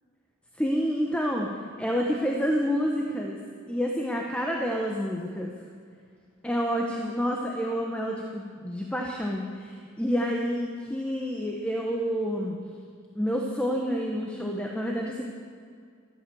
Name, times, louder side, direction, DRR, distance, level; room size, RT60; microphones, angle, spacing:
voice 1, 0.6-3.4 3.7-5.5 6.4-12.6 13.1-15.2, equal, 5° left, 0 dB, 1.2 m, -28 dB
14.0 x 13.5 x 7.0 m, 2.1 s
head